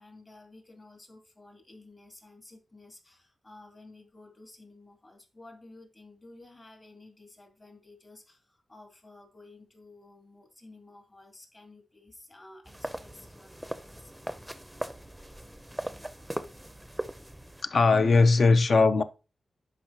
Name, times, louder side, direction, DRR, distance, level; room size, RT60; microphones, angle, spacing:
voice 1, 0.0-14.1, left 2 dB, 35° left, 2.5 m, -53 dB
sound 1, 12.7-17.6, right 1 dB, 5° right, 0.6 m, -39 dB
voice 2, 17.6-19.0, left 3 dB, 55° left, 0.6 m, -20 dB
11.0 x 4.9 x 2.9 m
cardioid pair, 90°, 0 cm